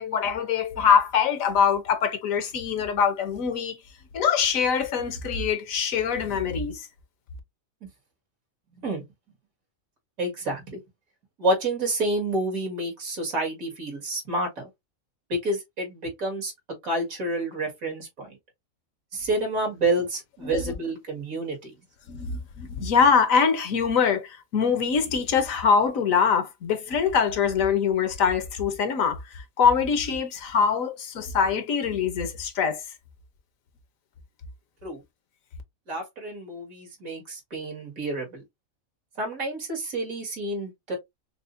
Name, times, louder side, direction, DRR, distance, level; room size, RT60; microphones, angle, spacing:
voice 1, 0.0-3.8 4.1-6.9 20.4-20.7 22.1-29.2 29.6-32.8, left 6 dB, 75° left, 1.2 m, -23 dB
voice 2, 10.2-10.8 11.4-14.7 15.3-16.5 16.8-18.4 19.1-21.7 34.8-35.0 35.9-38.4 39.2-41.0, right 2 dB, 85° right, 2.3 m, -29 dB
5.9 x 2.0 x 2.6 m
omnidirectional pair, 1.4 m